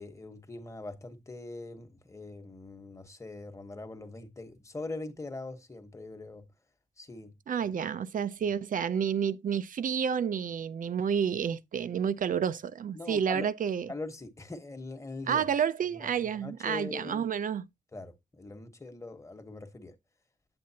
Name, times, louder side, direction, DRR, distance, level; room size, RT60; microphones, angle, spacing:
voice 1, 0.0-6.4 7.0-7.7 12.9-13.5 13.9-15.5 15.9-17.3 17.9-19.9, left 2 dB, 20° left, 1.2 m, -42 dB
voice 2, 7.5-13.9 15.3-17.6, right 7 dB, 85° right, 0.5 m, -30 dB
8.5 x 7.8 x 2.8 m
wide cardioid pair, 150°, 14 cm